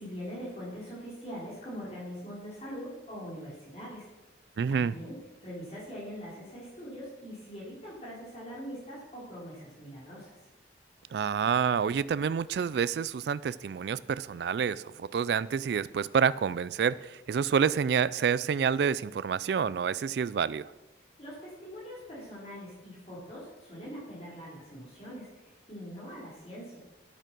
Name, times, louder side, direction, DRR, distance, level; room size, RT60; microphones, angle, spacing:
voice 1, 0.0-4.1 4.7-10.4 21.2-26.8, equal, 35° left, 4.2 m, -42 dB
voice 2, 4.6-4.9 11.1-20.7, right 6 dB, 65° right, 0.3 m, -28 dB
9.1 x 8.7 x 6.1 m
head